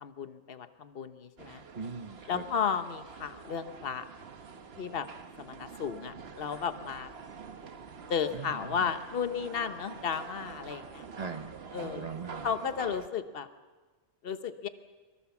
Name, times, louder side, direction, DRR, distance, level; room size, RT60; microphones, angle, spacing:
voice 1, 0.0-1.6 2.3-4.0 4.8-5.1 5.4-7.1 8.1-11.0 11.7-12.0 12.4-13.5 14.2-14.7, left 7 dB, 60° left, 10 dB, 1.2 m, -34 dB
sound 1, 1.4-13.1, right 5 dB, 65° right, 1.4 m, -46 dB
voice 2, 1.7-2.4 8.3-8.9 11.2-12.5, right 4 dB, 40° right, 8 dB, 1.2 m, -41 dB
24.5 x 23.0 x 7.2 m, 1.3 s
omnidirectional pair, 1.1 m